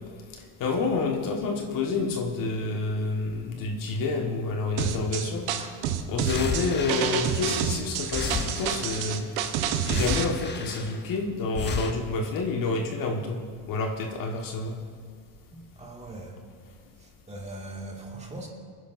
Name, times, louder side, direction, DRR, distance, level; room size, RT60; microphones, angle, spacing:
voice 1, 0.6-5.4 6.1-9.2 9.8-13.4 13.7-14.7, left 3 dB, 55° left, 1 dB, 1.6 m, -28 dB
sound 1, 4.8-10.3, right 9 dB, 70° right, 1.1 m, -28 dB
sound 2, 6.3-7.7 8.0-9.3 9.9-11.1 11.5-11.9, left 4 dB, 25° left, 1.1 m, -33 dB
voice 2, 15.5-16.4 17.0-18.5, right 2 dB, 15° right, -1 dB, 2.2 m, -41 dB
25.0 x 10.0 x 2.7 m, 2.2 s
supercardioid pair, 105°, 39 cm